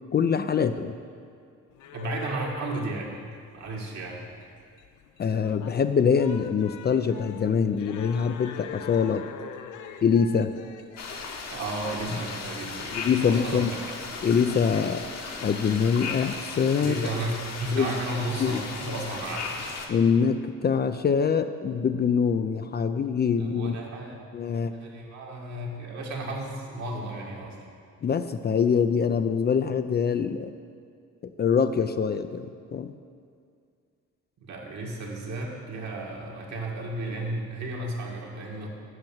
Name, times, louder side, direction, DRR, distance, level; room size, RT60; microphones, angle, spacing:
voice 1, 0.1-0.9 5.2-9.2 10.0-10.5 12.9-13.7 14.2-15.0 15.4-17.0 17.7-17.9 18.4-18.6 19.9-23.8 24.3-24.7 28.0-30.5 31.2-32.5 32.7-32.9, left 6 dB, 35° left, 10 dB, 0.4 m, -24 dB
sound 1, 1.7-13.8, left 8 dB, 80° left, 0.6 m, -45 dB
voice 2, 1.9-3.1 3.5-4.2 11.5-14.0 16.8-17.3 17.6-19.6 23.4-24.2 24.7-27.6 34.4-38.7, right 2 dB, 65° right, -1 dB, 1.9 m, -33 dB
sound 2, 11.0-19.9, left 4 dB, 60° left, 1.2 m, -36 dB
7.9 x 5.9 x 7.3 m, 2.3 s
cardioid pair, 90°, 30 cm